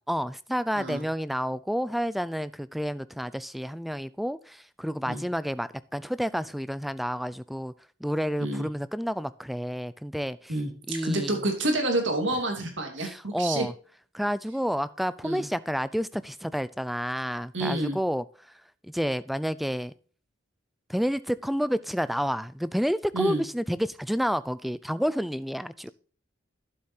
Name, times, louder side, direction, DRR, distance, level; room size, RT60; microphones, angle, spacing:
voice 1, 0.1-7.7 8.0-10.6 10.9-11.4 13.0-13.7 14.1-18.3 18.8-19.9 20.9-25.9, equal, ahead, 16 dB, 0.3 m, -30 dB
voice 2, 10.5-13.7 15.2-15.5 17.5-18.0 23.1-23.4, right 1 dB, 65° right, 3 dB, 2.7 m, -28 dB
12.0 x 7.5 x 2.8 m, 0.41 s
head